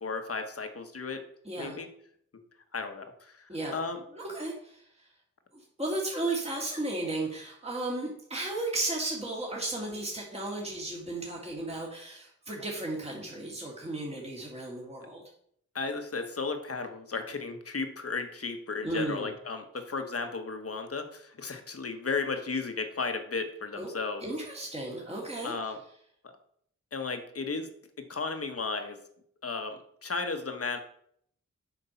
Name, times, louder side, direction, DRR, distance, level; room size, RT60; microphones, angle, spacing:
voice 1, 0.0-1.2 1.6-1.9 2.7-4.0 15.7-24.3 25.4-25.8 26.2-26.3 26.9-27.7 28.0-29.0 29.4-30.8, left 4 dB, 50° left, 6 dB, 1.3 m, -34 dB
voice 2, 1.4-1.8 3.5-3.8 4.1-4.8 5.8-15.2 18.8-19.3 23.8-23.9 24.2-25.5, right 2 dB, 20° right, -2 dB, 2.0 m, -34 dB
8.3 x 4.5 x 5.7 m, 0.67 s
cardioid pair, 75°, 30 cm